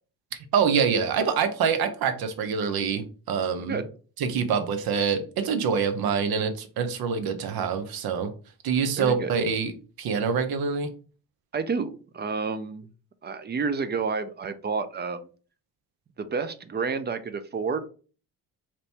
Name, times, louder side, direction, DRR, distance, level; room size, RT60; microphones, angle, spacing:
voice 1, 0.5-3.8 4.2-8.3 8.6-9.7 10.0-10.9, right 6 dB, 70° right, 9 dB, 0.7 m, -25 dB
voice 2, 9.0-9.3 11.5-12.9 13.2-15.3 16.2-17.8, right 5 dB, 25° right, 11 dB, 0.4 m, -30 dB
2.9 x 2.6 x 3.3 m, 0.38 s
cardioid pair, 75°, 39 cm